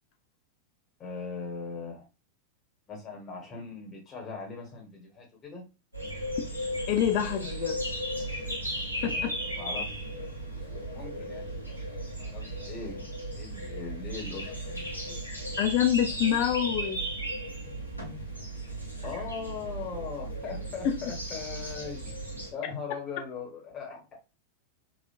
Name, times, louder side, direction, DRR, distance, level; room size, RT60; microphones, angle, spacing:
voice 1, 1.0-2.0 2.9-5.6 9.1-10.1 10.6-13.0 13.4-15.2 19.0-22.1 22.5-24.2, left 5 dB, 25° left, 1.1 m, -40 dB
sound 1, 5.9-22.5, right 1 dB, 85° left, 0.8 m, -36 dB
voice 2, 6.9-7.8 9.0-9.3 15.6-17.0 20.8-21.0, left 10 dB, 45° left, 0.5 m, -26 dB
2.9 x 2.4 x 2.4 m
figure-of-eight pair, 90°, 0 cm